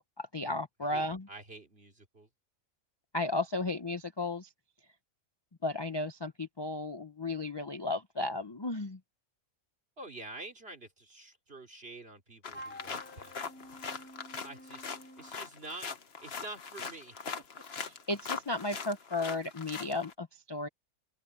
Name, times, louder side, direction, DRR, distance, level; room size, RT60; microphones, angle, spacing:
voice 1, 0.2-1.3 3.1-4.5 5.6-9.0 17.8-20.7, left 2 dB, 25° left, 0.6 m, -34 dB
voice 2, 0.9-2.3 10.0-13.4 14.4-14.9 15.2-15.9 16.2-17.2, right 2 dB, 45° right, 3.5 m, -47 dB
sound 1, 12.4-20.1, left 5 dB, 50° left, 1.5 m, -41 dB
Wind instrument woodwind instrument, 12.5-15.4, equal, 10° left, 1.4 m, -50 dB
open air
omnidirectional pair, 1.5 m